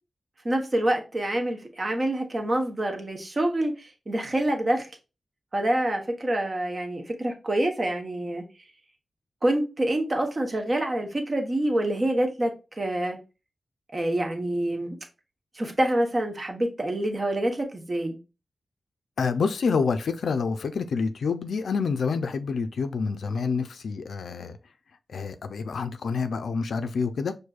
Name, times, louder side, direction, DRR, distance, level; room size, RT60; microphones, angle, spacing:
voice 1, 0.4-4.9 5.5-8.4 9.4-12.5 12.8-13.2 13.9-15.0 15.5-18.2, right 1 dB, 30° right, 0.9 m, -26 dB
voice 2, 19.2-24.6 25.1-27.4, left 5 dB, 90° left, 0.4 m, -27 dB
6.2 x 2.6 x 2.3 m
wide cardioid pair, 130°, 0 cm